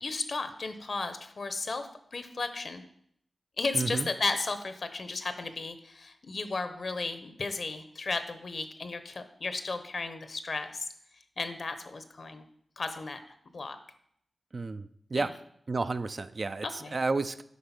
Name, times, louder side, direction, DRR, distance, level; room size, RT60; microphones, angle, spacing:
voice 1, 0.0-2.8 3.6-10.8 11.4-12.5 12.8-13.2 13.5-13.8 15.1-15.3 16.6-17.0, left 3 dB, 60° left, 9 dB, 1.0 m, -34 dB
voice 2, 3.7-4.1 14.5-15.3 15.7-17.4, right 3 dB, 50° right, 11 dB, 0.5 m, -31 dB
8.5 x 5.2 x 5.9 m, 0.70 s
cardioid pair, 60°, 0 cm